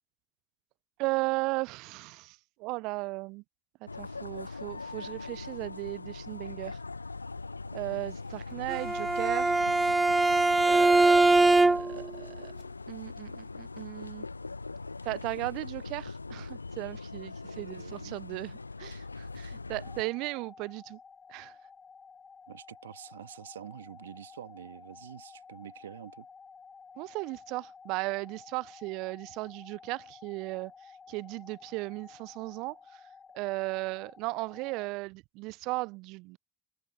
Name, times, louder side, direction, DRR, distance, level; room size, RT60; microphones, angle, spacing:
voice 1, 1.0-3.4 3.8-6.8 7.7-9.6 10.7-12.5 12.9-14.3 15.0-18.5 18.8-21.0 21.3-21.5 27.0-30.7 31.1-33.0 33.3-36.4, right 24 dB, 60° right, 0.6 m, -36 dB
sound 1, 3.9-20.0, left 3 dB, 90° left, 1.0 m, -41 dB
Bowed string instrument, 8.7-12.1, right 2 dB, 15° right, 0.5 m, -22 dB
voice 2, 17.4-18.2 22.5-26.3, right 10 dB, 80° right, 1.7 m, -47 dB
sound 2, 19.8-34.8, left 5 dB, 30° left, 3.1 m, -52 dB
figure-of-eight pair, 55°, 0 cm